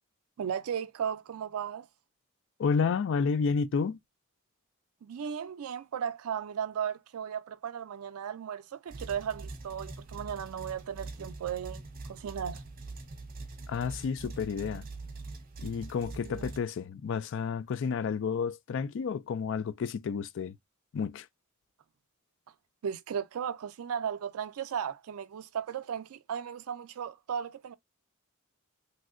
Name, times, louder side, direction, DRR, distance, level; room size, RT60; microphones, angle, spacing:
voice 1, 0.4-1.9 5.0-11.8 12.1-12.6 16.2-16.5 22.8-27.7, right 8 dB, 85° right, 0.4 m, -36 dB
voice 2, 2.6-4.0 13.7-14.8 15.6-20.6 20.9-21.3, left 5 dB, 60° left, 0.3 m, -31 dB
sound 1, 8.9-16.6, right 3 dB, 40° right, 0.6 m, -43 dB
3.1 x 2.7 x 2.5 m
head